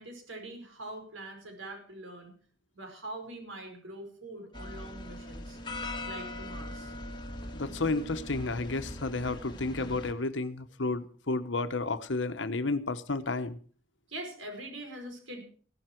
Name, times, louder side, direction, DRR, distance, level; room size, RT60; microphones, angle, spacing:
voice 1, 0.0-2.3 2.8-5.6 6.1-6.9 14.1-15.4, right 1 dB, 80° right, 5.1 m, -43 dB
sound 1, 4.5-10.1, left 1 dB, 25° left, 1.7 m, -40 dB
voice 2, 7.5-13.6, left 3 dB, 70° left, 1.1 m, -32 dB
16.5 x 12.5 x 4.6 m
head